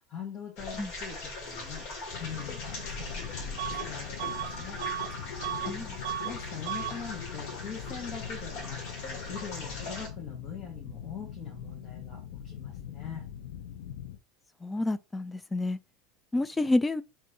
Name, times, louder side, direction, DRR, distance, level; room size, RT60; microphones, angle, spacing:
voice 1, 0.0-4.8 5.1-5.5 6.2-13.2, left 7 dB, 40° left, 1.5 m, -43 dB
sound 1, 0.6-10.1, left 3 dB, 60° left, 2.0 m, -40 dB
sound 2, 2.1-14.2, left 9 dB, 80° left, 0.6 m, -42 dB
Bus / Alarm, 3.6-3.9 4.2-5.8 6.0-6.4 6.6-7.0, right 12 dB, 75° right, 0.5 m, -35 dB
voice 2, 5.7-6.0 14.6-15.8 16.3-17.0, left 2 dB, 15° left, 0.3 m, -29 dB
4.1 x 3.1 x 3.1 m
supercardioid pair, 115°, 0 cm